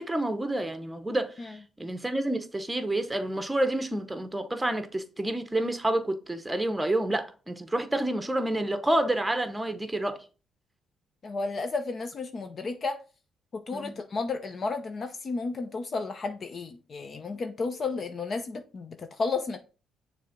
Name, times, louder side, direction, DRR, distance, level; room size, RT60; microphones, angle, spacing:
voice 1, 0.0-10.2 13.7-14.0, right 1 dB, 10° right, 1.0 m, -29 dB
voice 2, 11.2-13.0 13.5-19.6, left 4 dB, 45° left, 0.7 m, -32 dB
6.6 x 3.4 x 5.2 m
cardioid pair, 90°, 0 cm